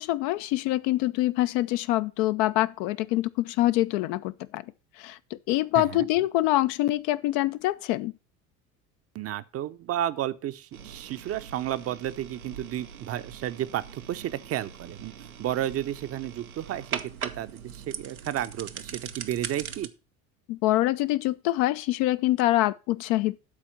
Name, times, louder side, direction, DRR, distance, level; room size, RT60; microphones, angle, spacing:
voice 1, 0.0-4.6 5.0-5.2 5.5-8.1 20.5-23.4, left 16 dB, 50° left, 0.5 m, -25 dB
voice 2, 5.7-6.1 9.1-15.1 15.4-19.9, right 12 dB, 35° right, 0.6 m, -32 dB
sound 1, 10.7-19.9, right 7 dB, 90° right, 0.7 m, -41 dB
12.0 x 4.3 x 5.6 m
figure-of-eight pair, 65°, 41 cm